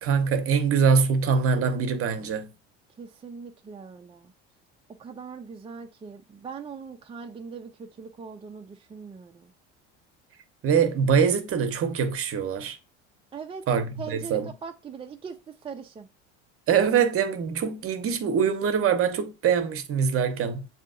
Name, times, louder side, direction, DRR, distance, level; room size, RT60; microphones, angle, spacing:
voice 1, 0.0-2.5 10.6-12.8 13.7-14.5 16.7-20.7, right 6 dB, 40° right, 0.8 m, -23 dB
voice 2, 2.9-4.3 5.0-9.5 13.3-13.7 14.0-16.1, right 5 dB, 15° right, 0.4 m, -41 dB
7.3 x 2.8 x 2.5 m
supercardioid pair, 105°, 33 cm